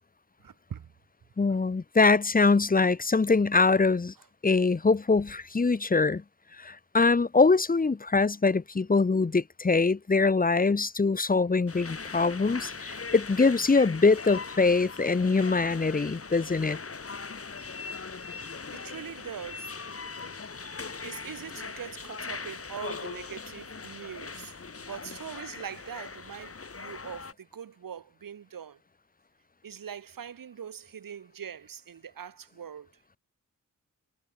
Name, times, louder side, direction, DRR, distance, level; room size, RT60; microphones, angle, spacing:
voice 1, 0.4-0.9 18.7-19.8 21.0-24.6 24.9-28.8 29.6-32.9, right 8 dB, 85° right, 1.9 m, -42 dB
voice 2, 1.4-4.1 4.4-6.2 6.6-16.8, left 4 dB, 25° left, 0.9 m, -23 dB
sound 1, 11.7-27.3, left 4 dB, 45° left, 5.6 m, -40 dB
wide cardioid pair, 125°, 33 cm